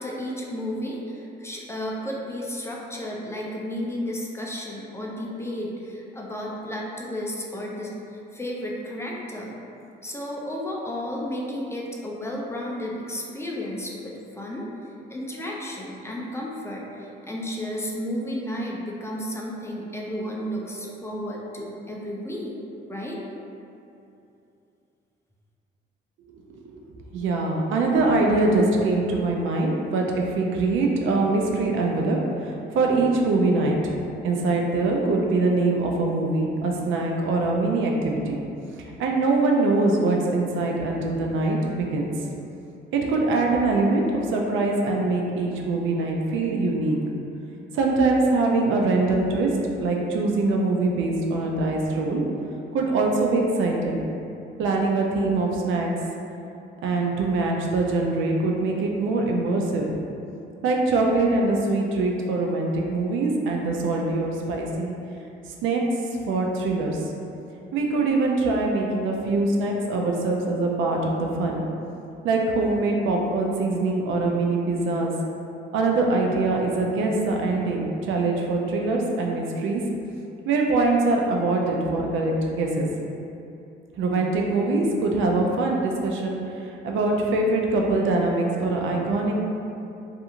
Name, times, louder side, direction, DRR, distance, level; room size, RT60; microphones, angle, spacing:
voice 1, 0.0-9.5 10.0-14.7 15.1-22.6 22.9-23.2, equal, 15° left, -3 dB, 0.4 m, -32 dB
voice 2, 27.1-33.8 34.2-38.4 38.8-42.1 42.9-44.1 44.3-47.0 47.7-49.5 49.8-52.2 52.7-54.1 54.6-55.9 56.8-59.9 60.6-64.9 65.6-65.8 66.1-67.0 67.7-71.6 72.2-75.1 75.7-79.8 80.5-82.9 84.0-89.3, right 3 dB, 80° right, 0 dB, 0.4 m, -23 dB
2.8 x 2.5 x 2.4 m, 2.7 s
cardioid pair, 90°, 20 cm